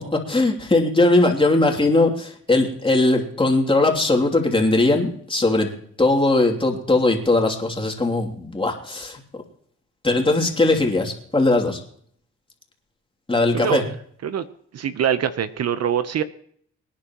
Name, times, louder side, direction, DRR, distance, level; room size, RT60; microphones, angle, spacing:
voice 1, 0.3-5.7 6.0-9.2 10.0-11.8 13.3-13.8, left 2 dB, 15° left, 1 dB, 3.0 m, -19 dB
voice 2, 13.5-14.0 14.2-14.5 14.7-16.2, right 8 dB, 55° right, 12 dB, 1.0 m, -24 dB
25.0 x 10.0 x 3.1 m, 0.62 s
cardioid pair, 90°, 30 cm